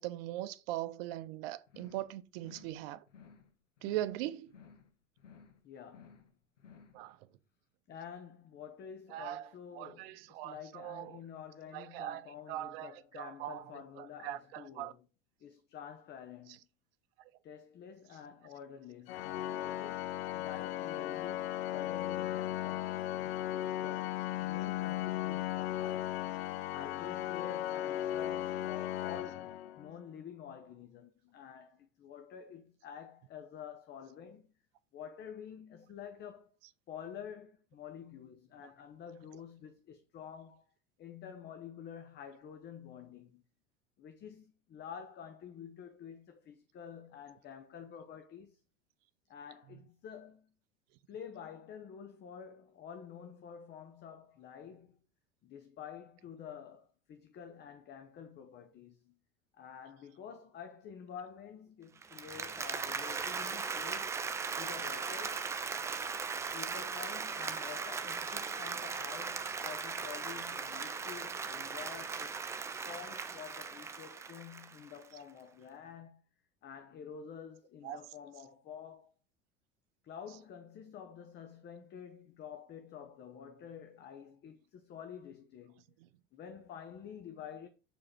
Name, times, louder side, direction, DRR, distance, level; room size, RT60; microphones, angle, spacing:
voice 1, 0.0-3.0 3.8-4.5 6.9-7.2 9.1-9.5 9.8-11.2 11.7-12.2 12.5-13.6 14.0-14.9 77.8-78.0, right 14 dB, 50° right, 0.7 m, -40 dB
sound 1, 1.7-2.1 2.4-2.8 3.1-3.5 3.8-4.2 4.5-4.9 5.2-5.6 5.9-6.3 6.6-7.0, left 6 dB, 70° left, 1.2 m, -57 dB
voice 2, 5.6-6.2 7.9-15.1 15.4-16.6 17.4-26.2 26.7-34.5 34.9-36.5 36.9-40.6 41.0-43.4 44.0-48.6 49.3-50.5 51.1-55.0 55.4-59.2 59.5-64.2 64.6-65.4 66.5-72.5 72.8-76.2 76.6-79.1 80.0-85.8 86.3-87.7, left 8 dB, 30° left, 0.8 m, -49 dB
Organ, 19.1-30.0, left 13 dB, 55° left, 0.5 m, -36 dB
Applause, 62.0-75.0, right 5 dB, 10° right, 0.3 m, -38 dB
6.9 x 4.8 x 4.3 m
figure-of-eight pair, 75°, 38 cm